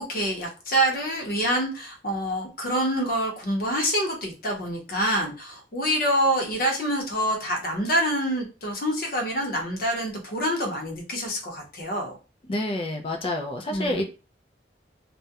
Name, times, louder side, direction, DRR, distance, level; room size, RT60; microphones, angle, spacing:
voice 1, 0.0-12.2 13.7-14.0, equal, 55° left, 1 dB, 0.7 m, -26 dB
voice 2, 12.5-14.0, left 1 dB, 30° left, 4 dB, 0.3 m, -28 dB
2.3 x 2.1 x 2.7 m, 0.33 s
head